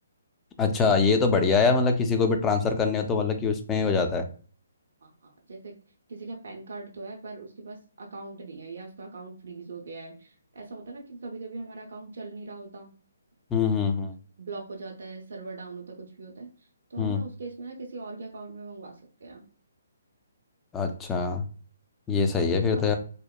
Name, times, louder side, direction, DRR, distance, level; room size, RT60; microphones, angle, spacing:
voice 1, 0.6-4.3 13.5-14.1 17.0-17.2 20.7-21.4 22.1-23.0, left 5 dB, 15° left, 5 dB, 0.4 m, -24 dB
voice 2, 5.0-5.7 6.1-12.9 14.4-19.4 22.5-22.9, right 3 dB, 65° right, 0 dB, 0.5 m, -41 dB
2.9 x 2.0 x 2.2 m, 0.41 s
figure-of-eight pair, 145°, 0 cm